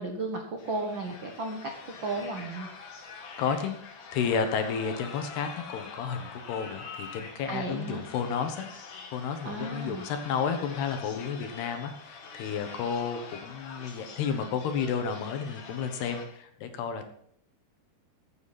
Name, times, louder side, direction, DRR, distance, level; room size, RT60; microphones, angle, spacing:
voice 1, 0.0-1.7 2.0-2.7 7.5-8.0 9.4-10.0, right 2 dB, 85° right, 2 dB, 1.0 m, -34 dB
sound 1, 0.6-16.3, left 5 dB, 55° left, 3.0 m, -45 dB
voice 2, 3.4-3.7 4.1-8.6 9.1-17.1, left 6 dB, 80° left, 6 dB, 3.4 m, -31 dB
15.0 x 9.5 x 4.2 m, 0.66 s
omnidirectional pair, 4.6 m